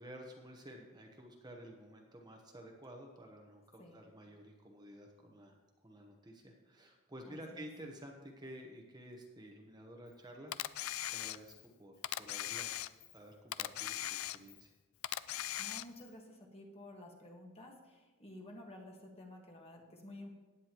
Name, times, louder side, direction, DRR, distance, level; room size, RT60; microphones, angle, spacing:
voice 1, 0.0-10.5 11.1-11.5 11.8-12.7 13.1-14.7, equal, 20° right, 1 dB, 1.1 m, -52 dB
voice 2, 7.2-7.7 15.6-20.3, left 1 dB, 30° left, 0 dB, 1.7 m, -52 dB
Camera, 10.5-11.7 12.0-13.2 13.5-14.7 15.0-16.1, left 13 dB, 70° left, 0.4 m, -39 dB
16.0 x 9.6 x 3.0 m, 1.2 s
head